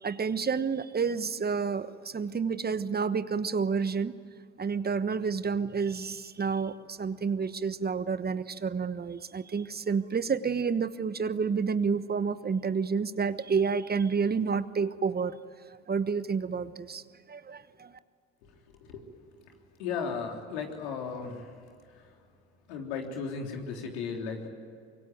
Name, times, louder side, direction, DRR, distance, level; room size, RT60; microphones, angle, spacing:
voice 1, 0.0-4.1 4.6-15.4 15.9-17.9, right 5 dB, 30° right, 13 dB, 1.2 m, -29 dB
voice 2, 19.8-21.5 22.7-24.5, left 5 dB, 80° left, 2 dB, 3.6 m, -35 dB
25.0 x 23.5 x 9.3 m, 2.3 s
hypercardioid pair, 60°, 33 cm